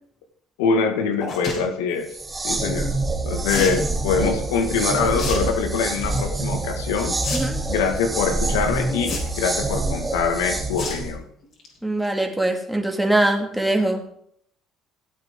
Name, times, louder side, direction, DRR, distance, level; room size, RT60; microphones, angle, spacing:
voice 1, 0.6-2.1 2.4-2.9 3.2-7.1 7.7-11.2, left 5 dB, 80° left, 5 dB, 1.7 m, -24 dB
sound 1, 1.2-1.6 3.5-3.8 5.1-5.4 5.8-6.1 7.2-7.4 7.7-7.8 9.0-9.5 10.8-11.0 11.4-11.7 12.0-12.1 12.3-12.4, left 3 dB, 55° left, 4.2 m, -29 dB
sound 2, 2.1-11.1, right 2 dB, 20° right, 2.2 m, -26 dB
voice 2, 11.8-14.0, right 1 dB, 5° right, 2 dB, 2.3 m, -22 dB
15.5 x 8.5 x 3.7 m, 0.65 s
hypercardioid pair, 65°, 0 cm